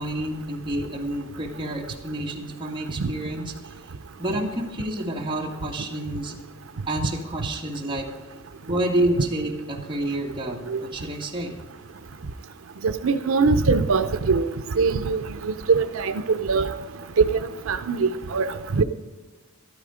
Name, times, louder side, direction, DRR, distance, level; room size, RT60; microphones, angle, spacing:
voice 1, 0.0-3.7 4.2-6.4 6.9-8.1 8.7-11.6, right 1 dB, 25° right, -1 dB, 2.1 m, -29 dB
voice 2, 13.0-14.4 14.8-15.2 15.7-16.1 16.5-16.7 17.7-18.8, right 4 dB, 80° right, 10 dB, 0.6 m, -22 dB
13.0 x 13.0 x 5.0 m, 1.2 s
head